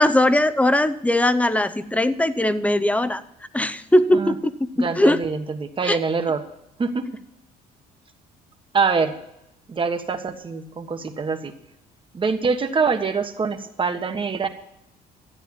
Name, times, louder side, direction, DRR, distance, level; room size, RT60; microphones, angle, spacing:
voice 1, 0.0-3.2 3.5-4.5 5.0-5.2 5.8-6.0, left 1 dB, 10° left, 13 dB, 0.7 m, -19 dB
voice 2, 4.8-6.4 6.8-7.1 8.7-9.1 9.7-11.5 12.1-14.5, right 5 dB, 30° right, 7 dB, 1.4 m, -24 dB
13.5 x 9.0 x 7.2 m, 0.81 s
cardioid pair, 110°, 17 cm